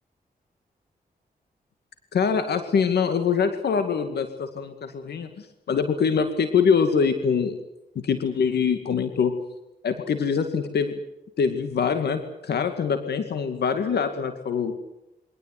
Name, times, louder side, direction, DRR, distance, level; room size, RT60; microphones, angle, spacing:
voice 1, 2.1-7.5 8.0-9.3 9.8-11.0 11.4-14.7, left 6 dB, 90° left, 8 dB, 2.2 m, -24 dB
23.5 x 18.0 x 9.4 m, 0.89 s
cardioid pair, 75°, 17 cm